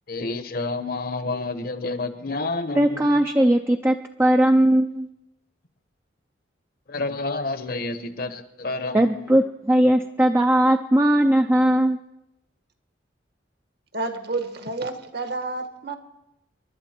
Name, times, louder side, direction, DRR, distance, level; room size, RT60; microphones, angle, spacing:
voice 1, 0.1-3.3 6.9-9.3, left 3 dB, 50° left, 10 dB, 1.1 m, -29 dB
voice 2, 2.8-5.1 8.9-12.0, right 1 dB, 15° right, 3 dB, 0.5 m, -19 dB
voice 3, 13.9-16.0, right 3 dB, 55° right, 7 dB, 1.5 m, -30 dB
28.0 x 11.5 x 4.5 m, 0.90 s
head